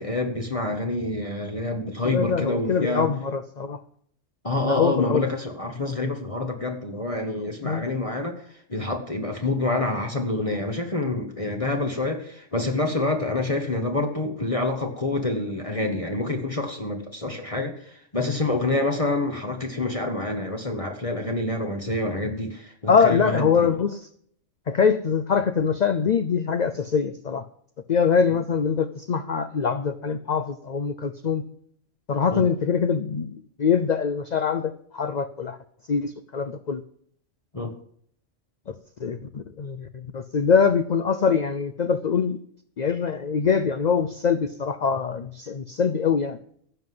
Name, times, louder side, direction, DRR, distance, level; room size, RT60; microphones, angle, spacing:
voice 1, 0.0-3.1 4.4-8.3 8.7-23.7 32.3-32.4 37.5-37.7, left 2 dB, 25° left, 2 dB, 1.3 m, -27 dB
voice 2, 2.0-3.8 4.6-5.3 7.6-7.9 10.3-10.4 22.9-24.1 24.7-27.5 27.9-31.4 32.1-35.6 35.9-36.8 38.7-42.4 42.8-46.4, left 6 dB, 45° left, 10 dB, 0.6 m, -23 dB
15.5 x 5.7 x 7.7 m, 0.63 s
omnidirectional pair, 1.3 m